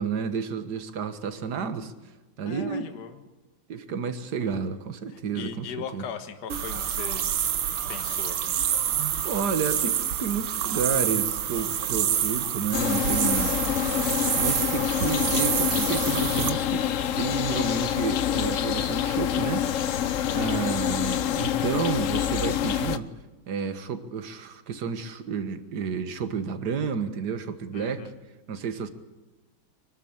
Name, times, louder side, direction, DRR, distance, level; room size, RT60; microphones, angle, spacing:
voice 1, 0.0-1.9 2.4-2.9 3.7-6.1 8.9-13.6 14.4-16.9 17.2-19.7 20.3-23.1 23.5-28.1 28.5-28.9, right 6 dB, 50° right, 10 dB, 1.9 m, -31 dB
voice 2, 2.4-3.2 5.1-7.3 7.9-8.6 27.7-28.2, left 7 dB, 50° left, 7 dB, 1.9 m, -39 dB
sound 1, 6.5-16.5, right 9 dB, 75° right, 2.0 m, -27 dB
sound 2, 12.7-23.0, left 10 dB, 75° left, 0.7 m, -26 dB
24.5 x 12.5 x 8.8 m, 1.2 s
omnidirectional pair, 2.4 m